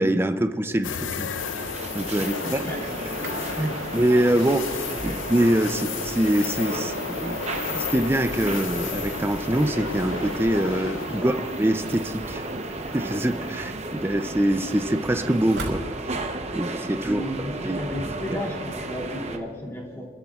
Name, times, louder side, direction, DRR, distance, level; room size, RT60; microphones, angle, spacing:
voice 1, 0.0-1.3 1.9-2.6 3.6-7.4 7.7-12.4 12.9-15.8 16.5-17.8 18.1-18.2, right 1 dB, 10° right, 9 dB, 0.4 m, -24 dB
sound 1, 0.8-13.9 14.3-14.4 16.8-17.2, left 6 dB, 80° left, 0.6 m, -34 dB
sound 2, 1.3-19.4, right 2 dB, 35° right, 0.9 m, -34 dB
voice 2, 2.4-3.0 11.1-11.3 17.0-20.1, equal, 15° left, -5 dB, 2.5 m, -34 dB
Sliding door, 2.7-3.5 4.2-6.5 7.1-9.2 11.6-13.6 14.0-16.5, right 2 dB, 75° right, 4.3 m, -42 dB
30.0 x 13.5 x 2.4 m, 2.1 s
head